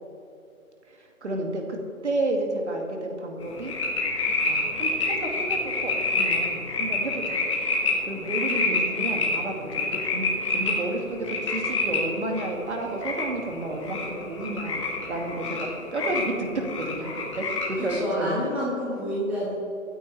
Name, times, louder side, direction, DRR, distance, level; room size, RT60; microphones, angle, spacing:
voice 1, 1.2-1.8 2.0-3.7 4.5-7.4 8.1-17.1 17.4-18.4, right 2 dB, 50° right, 2 dB, 2.3 m, -31 dB
sound 1, 3.4-18.0, left 2 dB, 20° left, 1.6 m, -28 dB
voice 2, 8.5-9.0 17.9-19.5, equal, 5° right, -8 dB, 1.3 m, -30 dB
24.0 x 9.6 x 3.3 m, 2.8 s
figure-of-eight pair, 160°, 44 cm